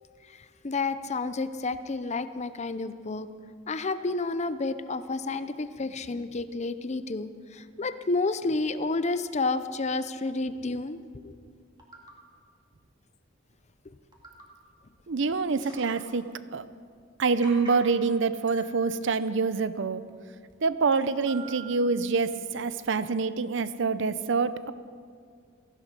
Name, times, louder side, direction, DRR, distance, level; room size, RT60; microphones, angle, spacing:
voice 1, 0.6-3.3 3.7-11.4, left 3 dB, 35° left, 12 dB, 0.6 m, -30 dB
sound 1, 11.3-11.4 11.8-12.2 13.2-13.3 13.6-13.7 14.1-14.6 15.0-15.1 15.4-16.4 16.9-17.0 17.4-18.1 18.5-20.0 20.5-20.6 20.9-22.3 22.8-22.9, right 4 dB, 20° right, 2.3 m, -48 dB
voice 2, 15.1-16.7 17.2-20.0 20.6-24.7, right 4 dB, 65° right, 14 dB, 0.6 m, -26 dB
17.5 x 14.5 x 5.3 m, 2.1 s
head